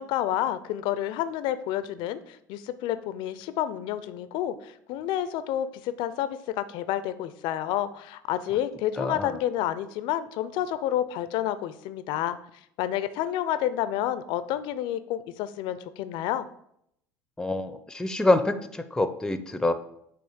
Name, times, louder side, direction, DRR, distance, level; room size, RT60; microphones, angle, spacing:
voice 1, 0.0-12.4 12.8-16.5, left 11 dB, 65° left, 13 dB, 0.6 m, -29 dB
voice 2, 9.0-9.4 17.4-19.7, left 2 dB, 5° left, 10 dB, 0.8 m, -26 dB
8.7 x 3.1 x 6.3 m, 0.74 s
hypercardioid pair, 75°, 9 cm